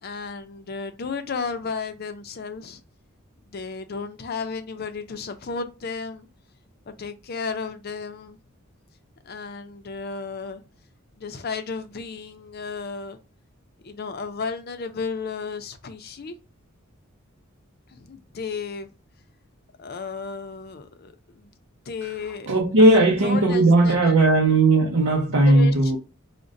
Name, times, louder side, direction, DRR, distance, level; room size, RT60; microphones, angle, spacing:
voice 1, 0.0-2.8 3.5-6.3 6.9-8.4 9.2-10.6 11.2-13.2 13.8-16.4 17.9-18.9 19.8-21.5 21.9-22.5 22.8-24.2 25.1-26.0, left 5 dB, 45° left, 0.5 m, -33 dB
voice 2, 22.5-26.0, right 2 dB, 75° right, 0.6 m, -17 dB
4.9 x 2.1 x 2.6 m
head